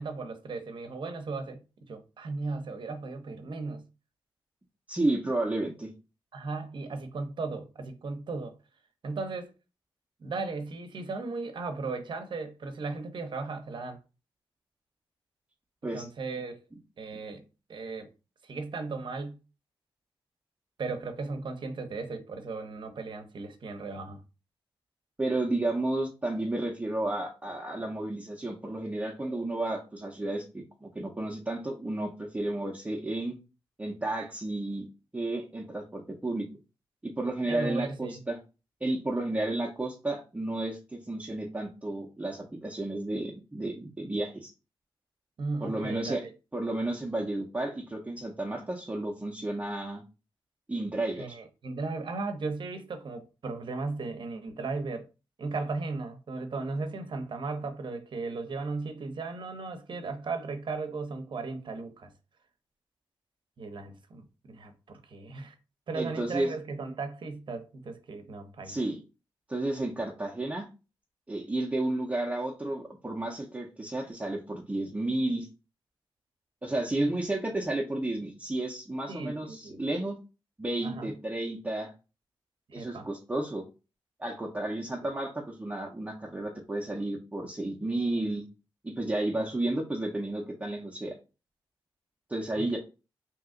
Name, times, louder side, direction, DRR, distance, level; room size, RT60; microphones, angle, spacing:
voice 1, 0.0-1.6 1.9-3.8 6.3-8.6 9.0-9.5 10.2-14.0 15.9-16.6 17.0-17.4 17.7-18.1 18.4-19.4 20.8-24.2 37.5-38.2 45.4-46.3 51.2-55.1 55.4-62.1 63.6-65.6 65.9-68.7 76.9-77.1 79.1-79.8 80.8-81.1 82.7-83.1 92.6-92.8, right 3 dB, 60° right, 0.7 m, -36 dB
voice 2, 4.9-5.9 15.8-16.1 25.2-33.4 33.8-34.9 35.1-36.5 37.0-38.4 38.8-44.5 45.6-46.3 46.5-50.0 50.7-51.4 65.9-66.6 68.6-69.0 69.5-70.7 71.3-75.5 76.6-80.2 80.6-81.9 82.7-83.6 84.2-88.4 88.8-91.1 92.3-92.8, right 2 dB, 15° right, 0.7 m, -32 dB
2.9 x 2.4 x 3.6 m
cardioid pair, 65°, 9 cm